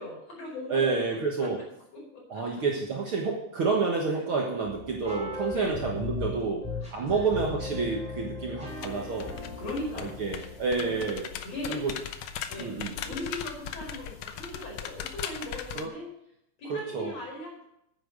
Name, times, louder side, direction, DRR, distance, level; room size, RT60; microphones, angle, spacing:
voice 1, 0.0-1.1 1.4-1.5 1.9-2.0 2.3-2.4 5.5-5.8 6.8-7.4 9.6-10.4 10.9-11.0 11.4-11.8 12.5-12.8 13.0-16.1 16.6-17.6, left 1 dB, 55° left, -3 dB, 6.2 m, -38 dB
voice 2, 0.7-1.6 2.3-6.6 6.9-9.3 10.0-11.3 11.7-11.9 12.6-13.0 15.7-15.9 16.7-17.2, right 4 dB, 50° right, -1 dB, 1.9 m, -29 dB
sound 1, 4.6-11.2, left 3 dB, ahead, 3.6 m, -38 dB
sound 2, 8.7-15.9, left 9 dB, 70° left, 1.7 m, -39 dB
9.9 x 9.0 x 6.6 m, 0.78 s
omnidirectional pair, 3.5 m